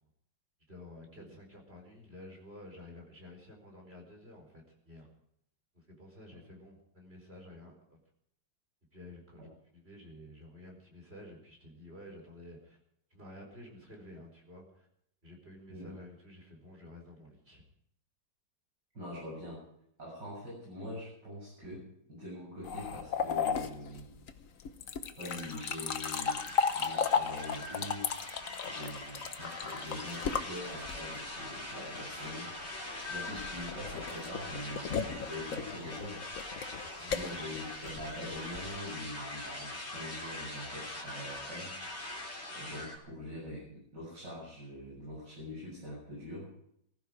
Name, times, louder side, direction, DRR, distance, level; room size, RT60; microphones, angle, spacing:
voice 1, 0.7-5.1 5.7-8.0 8.9-12.8 13.1-14.9 15.2-17.6 36.8-37.4, left 1 dB, 35° right, 1 dB, 4.5 m, -51 dB
voice 2, 18.9-19.6 20.0-24.1 25.2-26.4 26.7-28.1 28.6-36.7 37.0-41.7 42.5-46.5, left 1 dB, 70° right, -6 dB, 8.4 m, -44 dB
sound 1, 22.6-31.3 33.0-38.8, left 6 dB, 55° left, 1.3 m, -35 dB
sound 2, 25.3-43.0, left 1 dB, 35° left, 3.9 m, -43 dB
19.0 x 15.0 x 5.0 m, 0.72 s
omnidirectional pair, 1.9 m